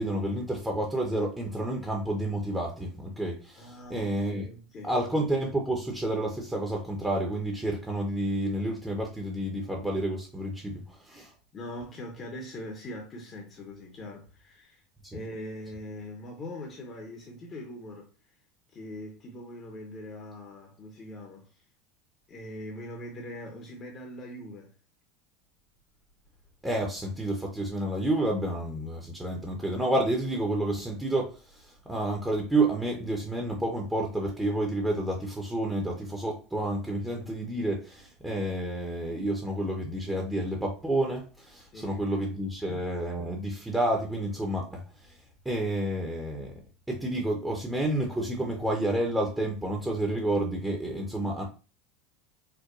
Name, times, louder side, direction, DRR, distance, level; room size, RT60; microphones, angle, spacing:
voice 1, 0.0-4.5 4.8-11.3 15.0-15.2 26.6-45.2 45.4-46.5 46.9-51.4, right 1 dB, 10° right, 0.8 m, -30 dB
voice 2, 3.6-4.9 11.5-14.8 15.1-18.1 18.7-21.5 22.3-24.7 41.7-42.3 42.6-42.8, left 1 dB, 35° left, 0.8 m, -42 dB
4.5 x 2.2 x 2.5 m
hypercardioid pair, 95°, 0 cm